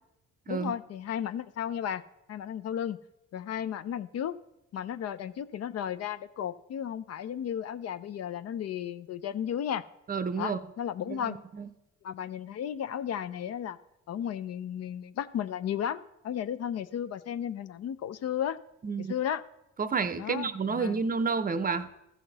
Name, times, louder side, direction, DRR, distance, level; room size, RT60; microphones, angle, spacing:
voice 1, 0.5-2.0 2.3-3.0 3.3-4.3 4.7-9.8 10.4-11.4 12.0-13.8 14.1-18.6 19.0-19.4 20.2-21.0, left 9 dB, 55° left, 14 dB, 0.5 m, -34 dB
voice 2, 10.1-10.6 11.1-11.7 18.8-19.1 19.8-21.9, right 5 dB, 30° right, 12 dB, 0.6 m, -30 dB
14.5 x 5.7 x 4.0 m, 0.87 s
cardioid pair, 90°, 30 cm